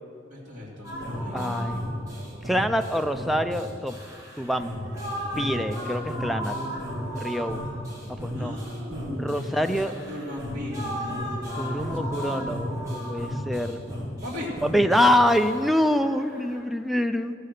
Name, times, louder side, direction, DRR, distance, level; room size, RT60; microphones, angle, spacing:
voice 1, 0.3-1.8 8.3-9.8 10.1-11.2 11.5-12.5 14.2-14.5, left 1 dB, 45° right, -7 dB, 2.5 m, -38 dB
sound 1, 0.8-16.6, equal, 15° right, 2.8 m, -34 dB
voice 2, 1.3-1.8 2.5-4.0 4.4-4.7 5.4-6.8 7.1-7.7 8.2-8.6 9.2-9.9 11.6-13.8 14.6-17.3, equal, ahead, 8 dB, 0.4 m, -25 dB
14.5 x 6.7 x 6.5 m, 2.5 s
head